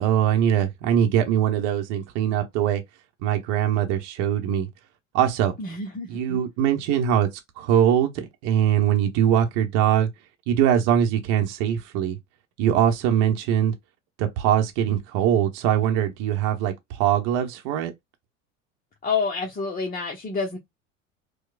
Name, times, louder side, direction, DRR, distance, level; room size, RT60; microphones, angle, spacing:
voice 1, 0.0-2.8 3.2-4.7 5.1-5.5 6.1-7.3 7.6-10.1 10.5-12.2 12.6-13.7 14.2-17.9, right 10 dB, 55° right, 0.9 m, -22 dB
voice 2, 5.6-6.4 19.0-20.6, left 4 dB, 25° left, 0.9 m, -28 dB
4.5 x 2.2 x 2.4 m
figure-of-eight pair, 70°, 39 cm